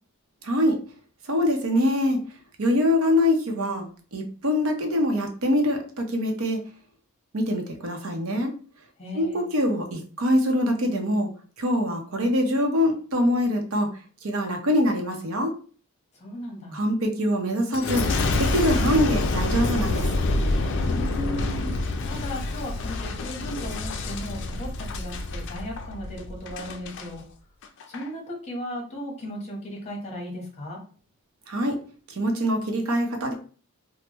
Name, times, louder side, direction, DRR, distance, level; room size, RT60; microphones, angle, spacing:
voice 1, 0.4-0.8 1.3-2.2 2.6-6.6 7.3-8.5 9.1-11.3 11.6-13.9 14.2-15.5 16.7-18.0 18.3-20.1 31.5-31.8 32.2-33.3, left 1 dB, 70° right, 3 dB, 0.7 m, -24 dB
voice 2, 9.0-9.5 16.2-16.8 20.8-27.2 27.9-30.8, equal, 30° left, 0 dB, 1.0 m, -36 dB
Boom, 17.7-27.1 27.6-28.1, left 2 dB, 55° left, 0.4 m, -27 dB
3.3 x 2.1 x 3.0 m, 0.41 s
head